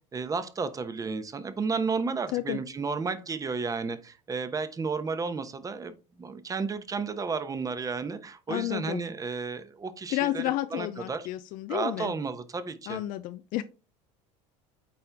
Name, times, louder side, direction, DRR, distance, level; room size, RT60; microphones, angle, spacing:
voice 1, 0.1-10.4 10.7-11.3 11.7-13.0, right 4 dB, 20° right, 12 dB, 1.0 m, -32 dB
voice 2, 8.5-9.0 10.1-12.1 12.9-13.6, left 15 dB, 60° left, 11 dB, 0.5 m, -31 dB
8.6 x 4.4 x 3.5 m, 0.31 s
supercardioid pair, 105°, 16 cm